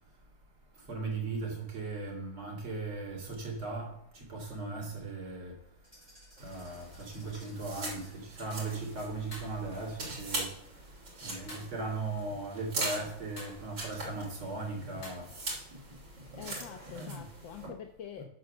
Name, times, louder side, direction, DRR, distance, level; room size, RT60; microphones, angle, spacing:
voice 1, 0.9-5.5 6.4-10.5 11.2-15.3 16.9-17.2 18.2-18.3, right 3 dB, 75° right, 3.4 m, -38 dB
sound 1, 5.8-8.3, equal, 15° right, 5.3 m, -59 dB
sound 2, 6.4-17.7, right 2 dB, 60° right, 4.1 m, -42 dB
sound 3, 9.3-9.6 11.5-11.8 13.3-13.7 15.0-15.1, left 1 dB, 45° left, 5.1 m, -46 dB
voice 2, 16.3-18.2, left 8 dB, 70° left, 1.4 m, -45 dB
9.1 x 6.9 x 6.6 m
omnidirectional pair, 2.3 m